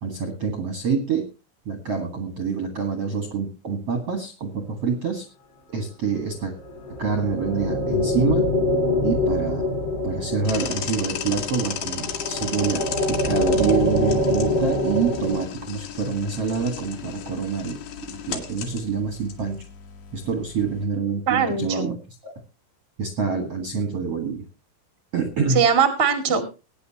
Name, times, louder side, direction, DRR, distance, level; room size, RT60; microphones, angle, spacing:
voice 1, 0.0-1.3 1.6-5.2 5.7-6.5 7.0-8.4 9.0-9.6 10.0-19.6 20.1-22.0 22.2-22.3 23.0-24.4 25.1-25.6, right 5 dB, 70° right, 5 dB, 1.4 m, -26 dB
sound 1, 6.6-15.4, left 1 dB, 45° left, 1.4 m, -25 dB
sound 2, 10.4-20.8, left 8 dB, 65° left, 3.2 m, -35 dB
voice 2, 21.3-21.9 25.5-26.4, right 6 dB, 85° right, 6 dB, 0.5 m, -20 dB
21.5 x 9.4 x 2.9 m, 0.30 s
omnidirectional pair, 5.6 m